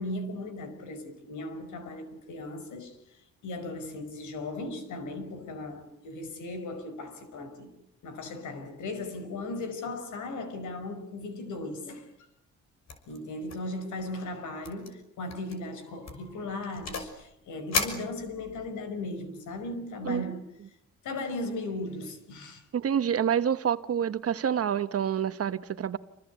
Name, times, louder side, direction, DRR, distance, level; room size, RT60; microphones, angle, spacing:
voice 1, 0.0-7.7 8.0-12.1 13.1-20.4 21.0-22.6, left 2 dB, 75° left, 5.3 m, -37 dB
sound 1, 12.9-13.2 13.5-13.7 14.0-14.1 14.6-14.9 15.3-15.5 16.0-17.2 17.7-18.7, left 5 dB, 60° left, 6.1 m, -34 dB
voice 2, 22.7-26.0, right 8 dB, 50° right, 1.2 m, -27 dB
28.0 x 25.0 x 8.4 m
cardioid pair, 90°, 30 cm